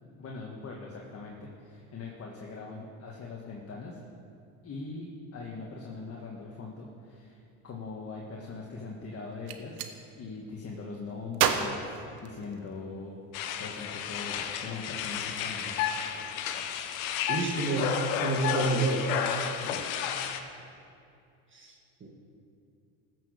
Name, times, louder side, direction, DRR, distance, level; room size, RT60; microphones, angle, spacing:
voice 1, 0.2-4.0 4.6-9.8 10.1-13.1 13.6-15.8 19.5-19.9, left 3 dB, 35° left, -2 dB, 1.6 m, -41 dB
Gunshot gunfire, 9.3-9.9 11.3-12.8, right 8 dB, 85° right, 1.1 m, -30 dB
sound 1, 13.3-20.4, left 8 dB, 85° left, 1.0 m, -32 dB
voice 2, 17.3-17.9 18.2-19.1 21.5-22.1, right 3 dB, 30° right, 0 dB, 1.7 m, -29 dB
15.0 x 6.3 x 6.6 m, 2.6 s
supercardioid pair, 100°, 41 cm